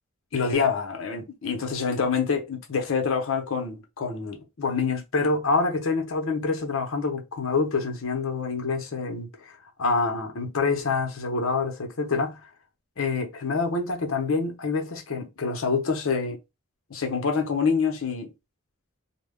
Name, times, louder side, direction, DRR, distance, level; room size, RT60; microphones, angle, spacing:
voice 1, 0.3-9.5 9.8-12.5 13.0-16.4 16.9-18.3, left 4 dB, 65° left, 0.7 m, -26 dB
2.2 x 2.0 x 3.4 m
head